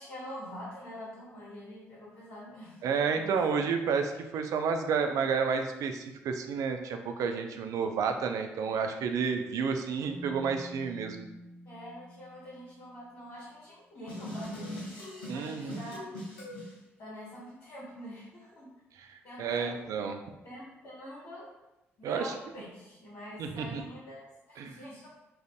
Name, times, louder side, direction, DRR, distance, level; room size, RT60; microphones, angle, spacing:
voice 1, 0.0-2.8 3.1-3.3 11.6-16.1 17.0-18.7 19.2-19.8 20.4-21.5 22.0-25.1, equal, 65° left, -7 dB, 1.1 m, -45 dB
voice 2, 2.8-11.2 15.3-15.8 19.0-20.2 22.0-22.3 23.4-23.8 24.6-24.7, right 6 dB, 65° right, 6 dB, 0.3 m, -31 dB
Keyboard (musical), 10.0-13.3, equal, 25° right, 1.1 m, -48 dB
sound 1, 14.1-16.7, left 1 dB, 85° left, 0.7 m, -41 dB
2.5 x 2.5 x 3.4 m, 0.95 s
hypercardioid pair, 45°, 6 cm